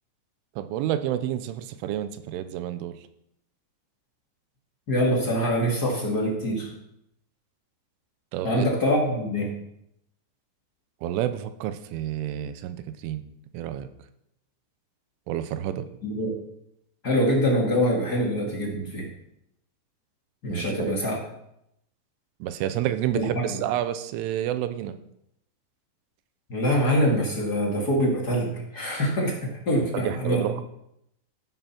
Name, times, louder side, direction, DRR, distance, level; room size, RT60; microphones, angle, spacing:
voice 1, 0.6-3.0 8.3-8.7 11.0-12.8 13.0-13.2 13.5-13.9 15.3-15.9 20.5-21.0 22.4-25.0 29.9-30.6, right 12 dB, 85° right, 11 dB, 3.2 m, -29 dB
voice 2, 4.9-6.7 8.4-9.5 16.0-16.4 17.0-19.1 20.4-21.2 23.1-23.6 26.5-30.4, equal, 45° left, -2 dB, 1.3 m, -24 dB
15.5 x 7.8 x 6.1 m, 0.79 s
omnidirectional pair, 5.6 m